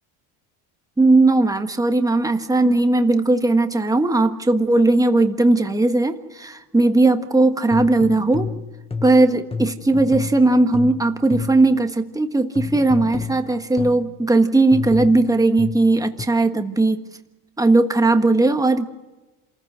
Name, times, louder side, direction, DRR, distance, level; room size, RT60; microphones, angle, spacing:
voice 1, 1.0-8.6 9.0-17.0 17.6-18.8, right 2 dB, 5° right, 7 dB, 1.4 m, -18 dB
sound 1, 7.7-11.8 12.6-14.1 14.7-16.2, left 5 dB, 10° left, 0.9 m, -30 dB
27.0 x 15.0 x 7.9 m, 1.1 s
cardioid pair, 115°, 48 cm